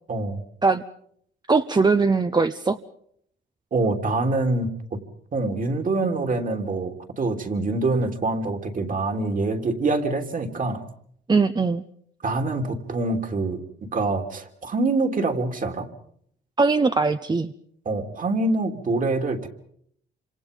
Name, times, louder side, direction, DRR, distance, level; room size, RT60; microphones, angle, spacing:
voice 1, 0.1-0.4 3.7-5.0 5.3-10.8 12.2-15.9 17.8-19.5, right 2 dB, 40° right, 5 dB, 3.2 m, -25 dB
voice 2, 1.5-2.8 11.3-11.8 16.6-17.5, right 4 dB, 20° right, 10 dB, 0.9 m, -20 dB
27.0 x 26.0 x 5.3 m, 0.66 s
cardioid pair, 90°, 20 cm